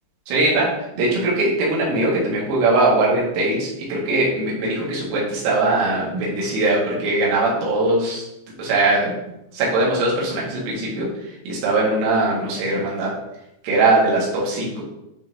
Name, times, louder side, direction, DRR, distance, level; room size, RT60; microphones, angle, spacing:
voice 1, 0.3-0.7 1.0-8.2 8.6-9.1 9.5-11.1 11.5-13.1 13.6-14.8, right 2 dB, 90° right, -5 dB, 4.4 m, -20 dB
12.0 x 4.0 x 2.7 m, 0.86 s
omnidirectional pair, 5.7 m